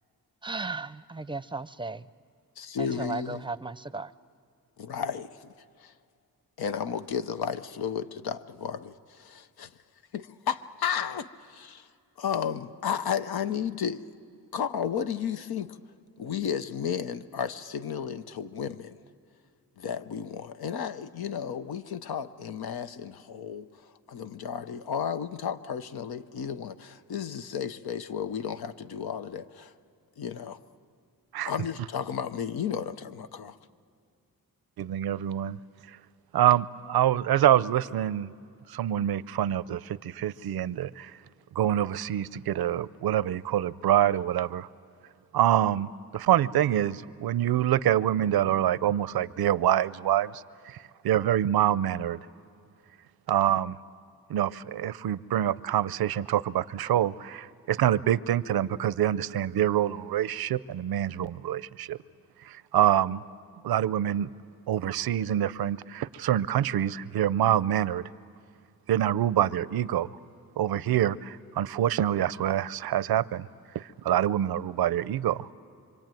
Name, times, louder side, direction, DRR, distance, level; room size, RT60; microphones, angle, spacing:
voice 1, 0.4-2.0 2.8-4.1, right 3 dB, 15° right, 16 dB, 0.6 m, -35 dB
voice 2, 2.6-3.4 4.8-5.5 5.8-5.9 6.6-9.7 10.1-11.9 12.2-14.0 14.5-15.7 16.2-19.0 19.8-23.7 24.1-29.7 30.2-30.6 31.5-33.6, left 7 dB, 90° left, 11 dB, 0.8 m, -33 dB
voice 3, 34.8-35.6 36.3-38.3 38.7-41.1 41.6-44.7 45.3-50.3 51.0-52.2 53.3-53.8 54.3-62.0 62.4-63.2 63.6-64.3 64.7-68.0 68.9-70.1 70.6-73.5 73.7-75.5, right 11 dB, 90° right, 18 dB, 0.6 m, -26 dB
26.5 x 24.0 x 9.1 m, 2.3 s
cardioid pair, 65°, 36 cm